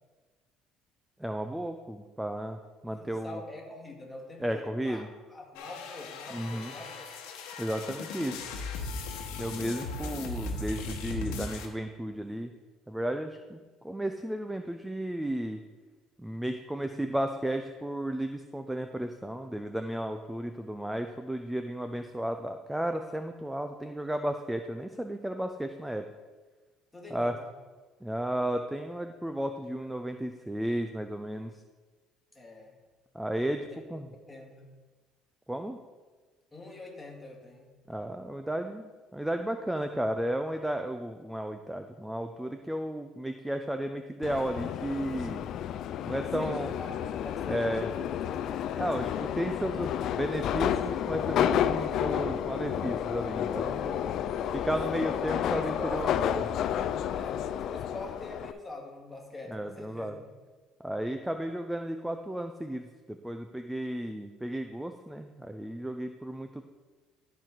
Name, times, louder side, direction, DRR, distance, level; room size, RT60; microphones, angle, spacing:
voice 1, 1.2-3.4 4.4-5.1 6.3-6.7 7.6-8.5 9.4-12.5 12.9-13.6 13.8-15.6 16.2-26.0 27.1-27.3 28.0-31.6 33.1-34.1 35.5-35.8 37.9-45.5 46.0-46.7 47.5-47.9 48.7-54.0 54.5-56.5 59.5-60.1 60.8-66.6, right 1 dB, 5° right, 7 dB, 0.4 m, -33 dB
voice 2, 2.8-5.0 5.3-7.1 26.9-27.5 32.3-32.8 33.7-33.9 34.2-34.8 36.5-37.8 46.1-48.1 53.8-54.2 55.5-56.3 57.1-60.2, left 2 dB, 10° left, -2 dB, 2.0 m, -44 dB
sound 1, 5.5-11.7, left 3 dB, 85° left, 1.1 m, -38 dB
Subway metro underground, 44.2-58.5, left 10 dB, 60° left, 0.4 m, -31 dB
13.0 x 4.6 x 3.8 m, 1.3 s
cardioid pair, 110°, 0 cm